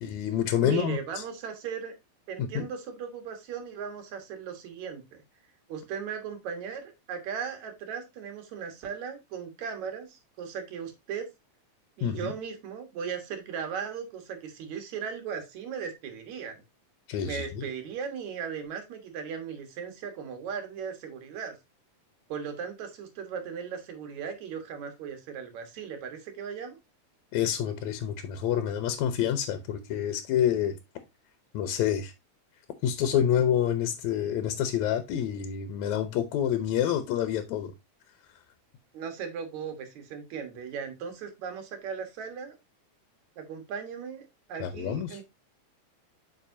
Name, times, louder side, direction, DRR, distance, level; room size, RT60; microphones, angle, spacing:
voice 1, 0.0-1.2 2.4-2.7 12.0-12.3 17.1-17.6 27.3-30.8 31.5-32.1 32.8-37.7 44.6-45.2, left 9 dB, 75° left, 2.0 m, -28 dB
voice 2, 0.6-1.9 2.3-5.2 5.7-11.3 12.0-16.6 17.2-21.5 22.3-26.8 38.9-42.6 43.4-45.2, right 7 dB, 70° right, 2.7 m, -37 dB
8.4 x 5.5 x 2.6 m
omnidirectional pair, 3.5 m